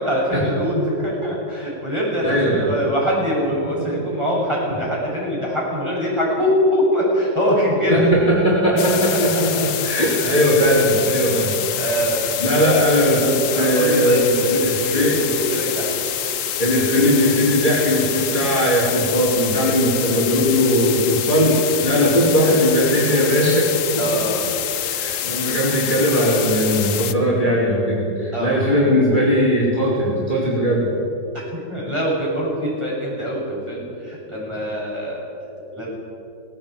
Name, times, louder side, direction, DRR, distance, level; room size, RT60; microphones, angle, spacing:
voice 1, 0.0-8.1 11.1-11.4 11.7-12.9 13.5-15.9 24.0-24.5 28.3-28.7 31.5-35.2 35.7-35.9, equal, 15° right, -6 dB, 7.7 m, -23 dB
voice 2, 2.2-2.7 3.8-3.9 7.9-11.9 12.4-15.2 16.6-23.7 24.8-30.9, equal, 25° left, -6 dB, 4.3 m, -19 dB
sound 1, 8.8-27.1, left 10 dB, 55° left, 1.0 m, -26 dB
19.0 x 17.5 x 9.1 m, 2.7 s
omnidirectional pair, 1.9 m